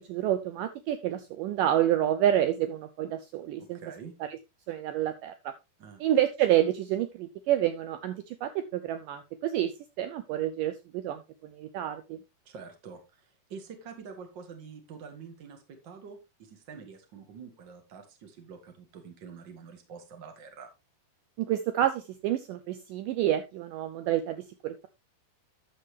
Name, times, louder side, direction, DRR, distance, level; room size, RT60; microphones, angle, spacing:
voice 1, 0.0-3.8 4.2-4.4 4.7-5.5 6.0-9.7 10.0-12.2 21.4-24.9, right 12 dB, 80° right, 10 dB, 2.0 m, -28 dB
voice 2, 3.6-4.1 5.8-6.0 12.5-20.7, right 6 dB, 40° right, 5 dB, 1.8 m, -46 dB
11.0 x 7.1 x 3.3 m, 0.25 s
omnidirectional pair, 4.4 m